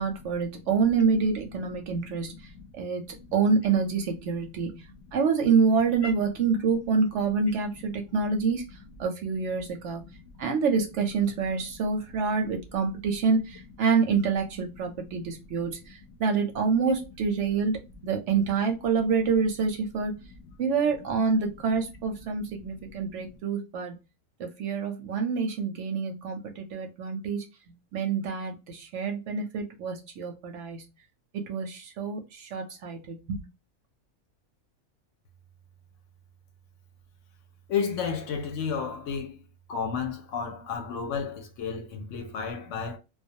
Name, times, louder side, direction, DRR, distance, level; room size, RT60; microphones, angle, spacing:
voice 1, 0.0-2.4 2.8-3.0 3.3-4.8 5.1-8.6 9.0-10.1 10.4-20.1 20.6-24.0 24.4-27.4 27.9-30.8 31.3-33.4, right 5 dB, 65° right, 0.8 m, -27 dB
voice 2, 1.8-2.2 2.5-2.7 3.0-3.2 6.0-6.1 10.1-10.3 15.4-15.6 22.8-23.3 37.7-39.4 39.7-43.0, left 6 dB, 70° left, 0.9 m, -33 dB
2.3 x 2.2 x 2.6 m
omnidirectional pair, 1.5 m